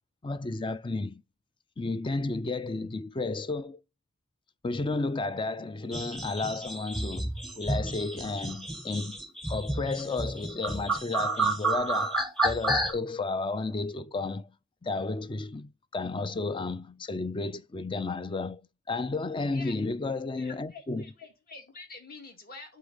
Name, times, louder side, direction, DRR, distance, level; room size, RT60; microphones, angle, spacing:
voice 1, 0.2-1.2 1.8-3.8 4.6-9.2 9.5-14.5 14.8-18.6 18.9-21.0, left 3 dB, 20° left, 0.4 m, -32 dB
sound 1, 5.9-12.9, right 2 dB, ahead, 1.2 m, -30 dB
voice 2, 20.4-22.8, left 4 dB, 45° left, 2.3 m, -47 dB
8.3 x 3.9 x 5.4 m
head